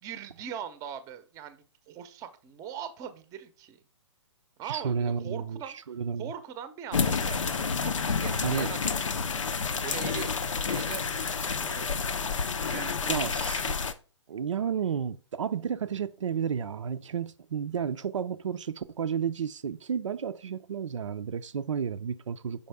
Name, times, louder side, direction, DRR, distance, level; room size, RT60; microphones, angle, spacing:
voice 1, 0.0-3.8 4.6-5.8 6.2-9.3 9.8-10.3 10.6-11.9 12.7-13.4, right 9 dB, 20° right, 0.6 m, -41 dB
voice 2, 4.6-6.3 8.4-8.7 13.1-13.8 14.3-22.7, right 7 dB, 85° right, 0.5 m, -32 dB
sound 1, 6.9-13.9, left 5 dB, 85° left, 0.6 m, -29 dB
5.4 x 5.1 x 3.4 m
hypercardioid pair, 140°, 16 cm